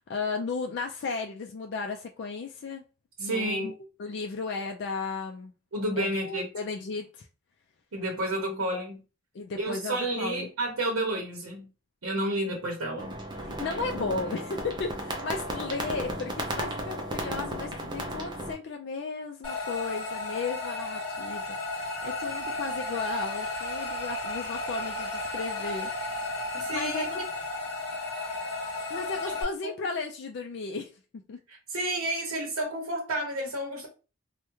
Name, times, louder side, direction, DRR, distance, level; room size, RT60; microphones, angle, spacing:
voice 1, 0.1-2.8 3.2-3.7 4.0-5.5 6.0-7.3 9.3-10.5 13.4-21.5 21.7-25.9 26.7-27.2 28.9-31.4, left 4 dB, 55° left, 0.3 m, -35 dB
voice 2, 3.2-3.7 5.7-6.5 7.9-9.0 9.6-11.7 12.0-13.2 26.5-27.2 31.5-33.9, right 1 dB, 90° right, 0.8 m, -31 dB
sound 1, 13.0-18.5, right 1 dB, 20° right, 0.4 m, -34 dB
sound 2, 19.4-29.4, left 2 dB, 25° left, 1.6 m, -33 dB
3.4 x 2.1 x 3.0 m
head